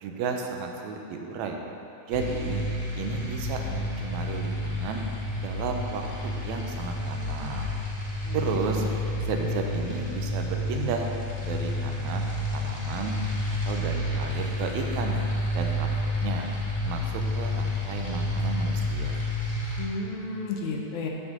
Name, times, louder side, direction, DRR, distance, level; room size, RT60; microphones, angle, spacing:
voice 1, 0.0-1.6 2.1-2.6 3.0-5.0 5.4-7.7 8.3-8.8 9.2-11.1 11.4-12.3 12.5-13.1 13.5-15.2 15.5-16.5 16.8-19.2, right 5 dB, 80° right, 3 dB, 1.9 m, -33 dB
sound 1, 2.1-19.9, left 1 dB, 20° left, 1.1 m, -30 dB
voice 2, 8.3-8.9 19.8-21.1, left 3 dB, 85° left, 0 dB, 2.3 m, -33 dB
8.0 x 7.2 x 3.7 m, 2.7 s
omnidirectional pair, 3.4 m